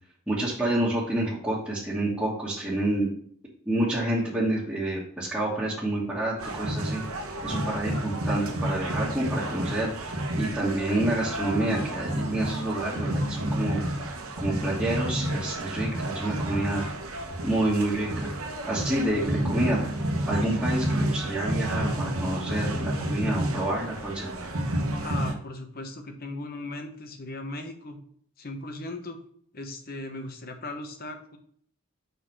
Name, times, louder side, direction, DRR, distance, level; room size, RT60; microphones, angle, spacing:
voice 1, 0.3-3.1 3.6-7.0 7.4-13.8 14.4-16.8 17.4-18.3 18.7-19.8 20.2-24.4, right 1 dB, 5° right, -9 dB, 1.5 m, -28 dB
sound 1, 6.4-25.3, right 1 dB, 75° right, 1.1 m, -30 dB
voice 2, 25.0-28.0 28.4-29.2 29.5-31.4, left 2 dB, 45° left, 6 dB, 1.0 m, -38 dB
5.4 x 4.3 x 6.0 m, 0.63 s
head